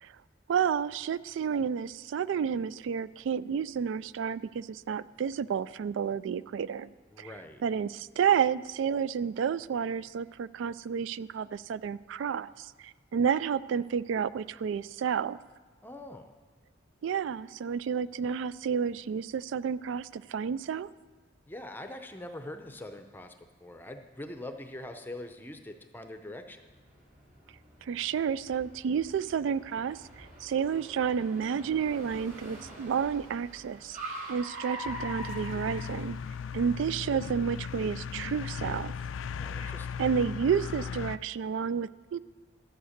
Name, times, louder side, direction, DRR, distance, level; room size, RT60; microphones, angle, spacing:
voice 1, 0.5-6.9 7.2-7.3 7.6-15.4 17.0-20.9 27.8-36.2 36.5-38.9 39.6-39.7 40.0-42.2, right 7 dB, 75° right, 18 dB, 0.3 m, -30 dB
voice 2, 7.1-7.6 15.8-16.3 21.5-23.3 23.6-26.6 39.3-39.9, left 1 dB, 10° left, 6 dB, 0.6 m, -43 dB
Car, 26.7-36.6, right 1 dB, 45° right, 3.8 m, -44 dB
sound 1, 34.8-41.2, left 6 dB, 85° left, 0.4 m, -37 dB
13.0 x 7.9 x 6.5 m, 1.4 s
head